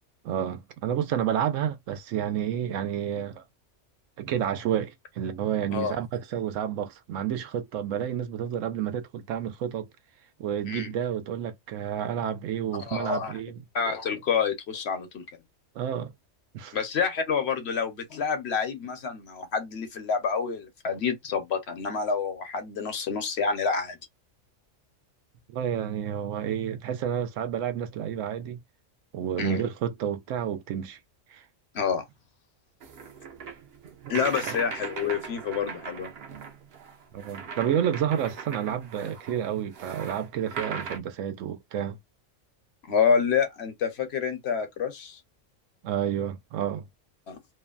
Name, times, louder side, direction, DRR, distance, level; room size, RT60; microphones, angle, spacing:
voice 1, 0.2-3.4 4.2-9.9 10.4-13.6 15.8-16.1 16.5-16.8 25.5-28.6 29.1-31.0 31.3-31.4 34.0-34.1 34.4-34.5 37.1-42.0 45.8-46.9, right 9 dB, 85° right, 0.9 m, -30 dB
voice 2, 12.9-13.3 13.7-15.2 16.7-24.0 29.4-29.6 31.7-32.0 34.1-36.1 42.9-45.2 47.3-47.4, left 6 dB, 60° left, 1.0 m, -28 dB
sound 1, 32.8-41.0, right 5 dB, 60° right, 0.8 m, -39 dB
3.0 x 2.1 x 2.4 m
omnidirectional pair, 1.3 m